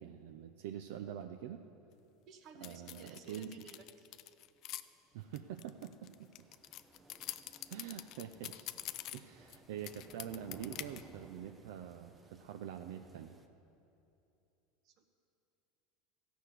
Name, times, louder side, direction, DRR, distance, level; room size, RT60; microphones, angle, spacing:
voice 1, 0.0-1.6 2.6-3.6 5.1-6.1 7.7-8.7 9.1-13.4, right 9 dB, 75° right, 7 dB, 0.5 m, -45 dB
voice 2, 2.3-4.1 7.5-7.6 14.8-15.0, right 5 dB, 45° right, 7 dB, 1.1 m, -56 dB
sound 1, 2.6-4.8 5.3-9.6 9.8-11.0, left 14 dB, 45° left, 0.4 m, -46 dB
sound 2, 4.5-13.5, right 2 dB, 10° right, 0.6 m, -60 dB
14.5 x 6.1 x 8.2 m, 2.8 s
supercardioid pair, 140°, 0 cm